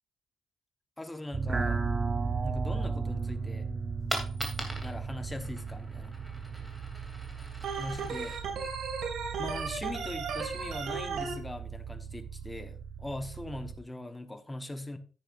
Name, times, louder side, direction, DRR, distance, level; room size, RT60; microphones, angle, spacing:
voice 1, 1.0-1.9 2.4-3.7 4.8-6.2 7.8-8.4 9.4-15.0, left 1 dB, 15° left, 1.1 m, -40 dB
sound 1, 1.3-13.8, right 4 dB, 35° right, 0.9 m, -36 dB
Coin (dropping), 3.8-9.8, right 1 dB, 10° right, 2.8 m, -42 dB
Organ, 7.6-11.3, right 5 dB, 65° right, 1.9 m, -35 dB
10.5 x 9.3 x 2.5 m
cardioid pair, 90°, 0 cm